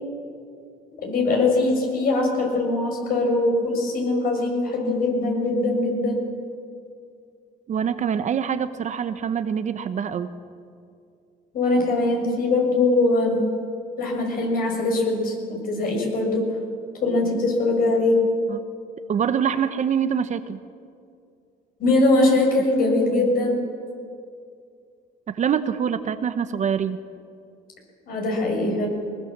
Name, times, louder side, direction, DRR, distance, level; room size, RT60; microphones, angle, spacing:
voice 1, 1.0-6.2 11.5-13.5 14.0-16.5 17.0-18.2 21.8-23.6 28.1-28.9, left 2 dB, 60° left, 1 dB, 6.6 m, -21 dB
voice 2, 7.7-10.3 18.5-18.6 19.1-20.6 23.1-23.3 25.3-27.0, right 7 dB, 45° right, 10 dB, 1.0 m, -25 dB
22.0 x 20.5 x 7.4 m, 2.3 s
cardioid pair, 110°, 17 cm